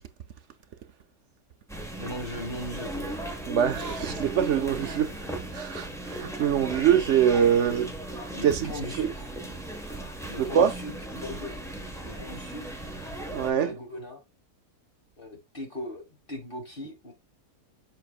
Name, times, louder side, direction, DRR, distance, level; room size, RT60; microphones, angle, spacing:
sound 1, 1.7-13.5, right 1 dB, ahead, 1.1 m, -37 dB
voice 1, 2.0-3.2 7.6-7.9 8.3-9.3 10.2-11.6 12.0-12.8 13.5-14.2 15.2-16.0 16.3-17.1, left 1 dB, 35° left, 1.7 m, -38 dB
voice 2, 3.5-7.9 8.4-8.7 9.0-9.1 10.4-10.7 13.3-13.7, right 9 dB, 60° right, 0.8 m, -24 dB
7.6 x 5.6 x 2.3 m
omnidirectional pair, 1.7 m